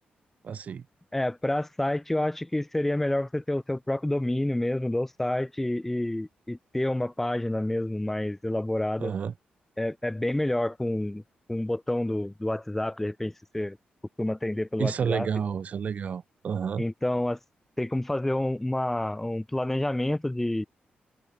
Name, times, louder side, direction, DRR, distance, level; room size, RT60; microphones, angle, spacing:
voice 1, 0.4-0.8 9.0-9.3 14.8-16.8, right 7 dB, 45° right, 1.2 m, -30 dB
voice 2, 1.1-9.1 9.8-11.2 11.5-13.8 14.2-15.3 16.8-17.4 17.8-20.7, left 1 dB, 10° left, 4.2 m, -28 dB
wide cardioid pair, 165°, 3 cm